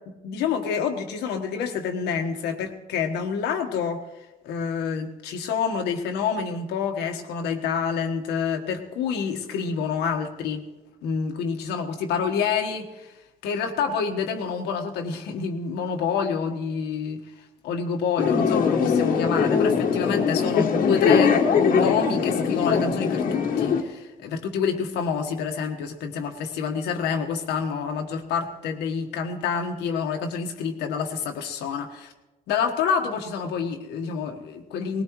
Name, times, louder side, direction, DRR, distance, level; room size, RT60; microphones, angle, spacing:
voice 1, 0.1-10.6 11.0-13.2 13.4-32.1 32.5-35.0, left 6 dB, 80° left, 4 dB, 1.5 m, -28 dB
sound 1, 18.2-23.8, left 6 dB, 55° left, 1.5 m, -21 dB
19.5 x 19.5 x 3.2 m, 1.1 s
cardioid pair, 110°, 17 cm